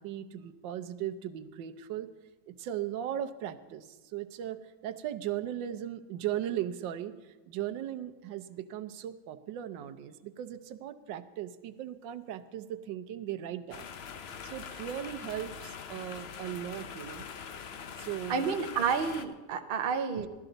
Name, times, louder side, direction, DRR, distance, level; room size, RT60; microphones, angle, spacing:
voice 1, 0.0-2.1 2.5-13.9 14.4-17.3 18.0-18.5 20.1-20.3, right 11 dB, 85° right, 10 dB, 1.4 m, -38 dB
sound 1, 13.7-19.3, left 7 dB, 75° left, 0.5 m, -43 dB
voice 2, 18.3-20.3, right 6 dB, 50° right, 6 dB, 0.7 m, -30 dB
17.0 x 12.5 x 3.9 m, 1.2 s
omnidirectional pair, 1.9 m